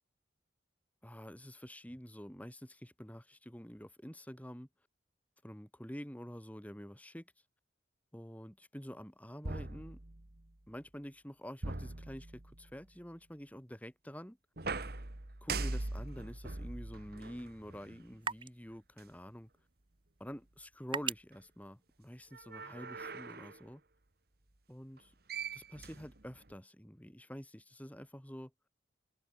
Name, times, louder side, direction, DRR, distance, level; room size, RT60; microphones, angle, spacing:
voice 1, 1.0-4.7 5.4-7.3 8.1-10.0 10.7-14.4 15.4-19.5 20.2-23.8 24.7-25.1 25.5-28.5, equal, 10° left, 3.0 m, -48 dB
sound 1, 9.4-10.5 11.6-12.8 14.6-18.1 19.0-19.1 22.3-23.6 25.0-25.1 25.3-26.6, right 3 dB, 55° right, 1.8 m, -42 dB
sound 2, 15.9-22.6, right 5 dB, 25° right, 3.8 m, -47 dB
head